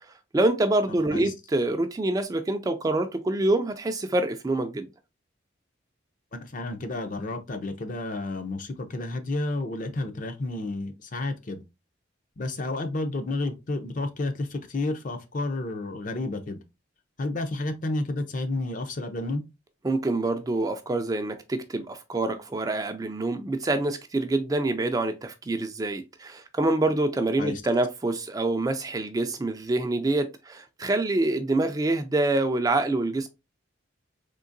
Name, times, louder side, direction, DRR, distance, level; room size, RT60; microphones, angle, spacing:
voice 1, 0.3-4.9 19.8-33.3, right 2 dB, 20° right, 0.3 m, -26 dB
voice 2, 6.3-11.6 12.4-16.6 17.2-19.4 27.4-27.6, left 2 dB, 45° left, 0.5 m, -31 dB
3.7 x 2.8 x 2.5 m
head